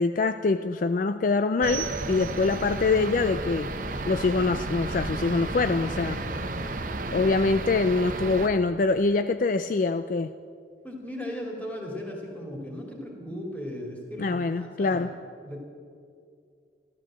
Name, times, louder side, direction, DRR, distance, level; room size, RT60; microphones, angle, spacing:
voice 1, 0.0-3.7 4.0-6.2 7.1-10.3 14.2-15.1, left 3 dB, 45° left, 11 dB, 0.4 m, -24 dB
sound 1, 1.6-8.5, right 2 dB, 45° right, 1.0 m, -32 dB
voice 2, 10.8-15.1 15.4-15.6, left 1 dB, 10° left, -1 dB, 2.9 m, -37 dB
14.0 x 13.0 x 7.6 m, 2.3 s
head